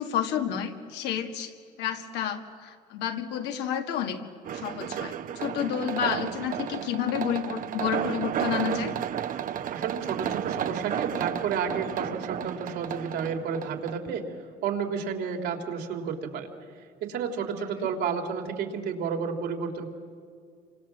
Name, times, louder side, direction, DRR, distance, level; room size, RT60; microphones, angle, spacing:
voice 1, 0.0-4.2 4.5-9.0 17.6-17.9, left 9 dB, 85° left, 5 dB, 2.1 m, -30 dB
sound 1, 4.4-13.9, right 9 dB, 55° right, 0.9 m, -32 dB
voice 2, 9.7-14.3 14.6-16.5 17.0-19.9, right 6 dB, 80° right, 3 dB, 3.3 m, -31 dB
29.0 x 25.5 x 7.4 m, 2.2 s
cardioid pair, 110°, 17 cm